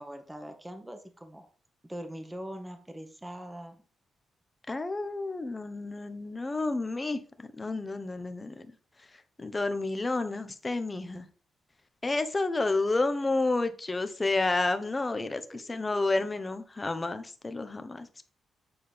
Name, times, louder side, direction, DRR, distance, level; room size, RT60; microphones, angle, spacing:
voice 1, 0.0-1.5 1.8-3.8 15.2-15.6, equal, 15° right, 6 dB, 1.2 m, -42 dB
voice 2, 4.7-7.2 7.6-8.5 9.4-11.2 12.0-15.4 15.7-18.3, left 3 dB, 30° left, 10 dB, 0.9 m, -30 dB
8.8 x 4.1 x 3.5 m, 0.41 s
supercardioid pair, 50°, 0 cm